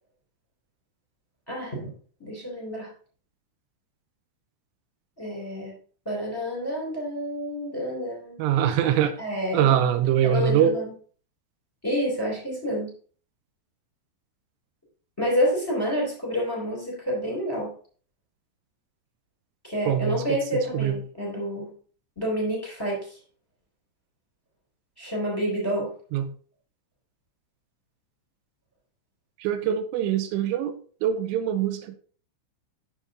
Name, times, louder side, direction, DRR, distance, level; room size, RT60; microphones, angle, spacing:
voice 1, 1.5-1.9 2.2-2.9 5.2-5.7 6.1-8.5 9.2-9.9 10.2-10.9 11.8-12.9 15.2-17.7 19.6-21.7 22.2-23.2 25.0-25.9, equal, 5° left, -3 dB, 3.5 m, -28 dB
voice 2, 8.4-9.2 9.5-10.8 19.9-21.0 26.1-26.3 29.4-30.7 31.0-32.0, right 10 dB, 90° right, 9 dB, 3.2 m, -23 dB
7.2 x 7.1 x 4.0 m, 0.43 s
omnidirectional pair, 5.7 m